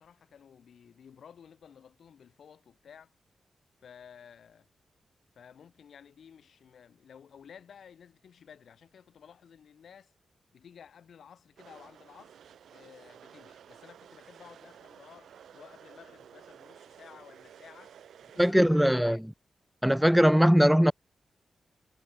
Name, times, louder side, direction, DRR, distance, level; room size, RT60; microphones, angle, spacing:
voice 1, 0.0-3.2 3.8-4.7 5.3-10.1 10.5-12.4 12.7-17.9 18.3-19.2, left 7 dB, 75° left, 6.3 m, -54 dB
sound 1, 11.6-18.5, right 9 dB, 80° right, 6.2 m, -53 dB
voice 2, 18.4-19.2 19.8-20.9, equal, 5° right, 0.4 m, -20 dB
supercardioid pair, 45°, 0 cm